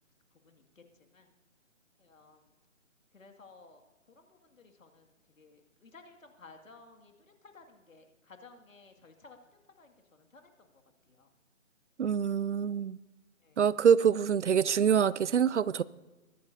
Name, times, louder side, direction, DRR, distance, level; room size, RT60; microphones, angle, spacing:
voice 1, 0.3-1.3 2.0-2.5 3.1-9.4 9.8-11.3 13.4-13.7, left 3 dB, 75° left, 5 dB, 2.3 m, -57 dB
voice 2, 12.0-13.0 13.6-15.8, right 7 dB, 60° right, 20 dB, 0.5 m, -25 dB
22.5 x 11.0 x 2.7 m, 1.1 s
hypercardioid pair, 165°, 40 cm